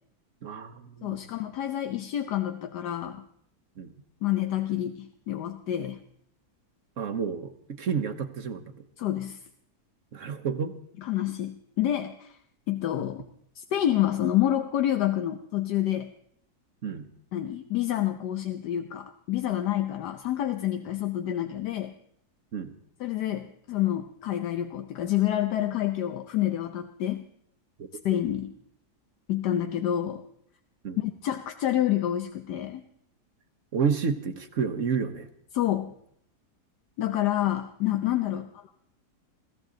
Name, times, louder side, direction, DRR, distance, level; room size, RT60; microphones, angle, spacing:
voice 1, 0.4-1.2 3.8-3.9 7.0-8.7 10.1-10.7 16.8-17.1 22.5-22.7 30.8-31.0 33.7-35.3 38.3-38.4, right 6 dB, 55° right, 9 dB, 1.2 m, -30 dB
voice 2, 1.0-3.2 4.2-6.0 9.0-9.4 11.0-12.4 12.7-13.2 13.5-16.1 17.3-21.9 23.0-27.2 28.0-28.5 29.3-30.2 31.0-32.8 35.5-35.9 37.0-38.7, left 12 dB, 80° left, 7 dB, 1.4 m, -28 dB
21.5 x 15.5 x 3.8 m, 0.66 s
omnidirectional pair, 1.8 m